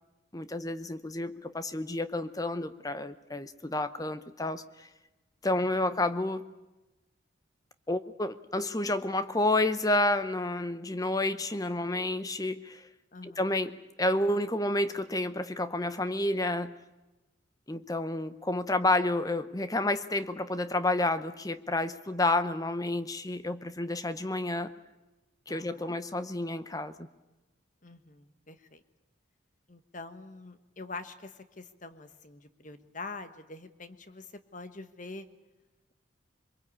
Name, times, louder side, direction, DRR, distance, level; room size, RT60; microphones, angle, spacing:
voice 1, 0.3-4.9 5.4-6.5 7.9-12.9 13.2-16.7 17.7-24.7 25.5-27.1, left 2 dB, 20° left, 0.8 m, -30 dB
voice 2, 13.1-13.4 25.5-26.0 27.8-28.8 29.7-35.3, left 3 dB, 40° left, 1.3 m, -45 dB
23.5 x 22.0 x 8.6 m
head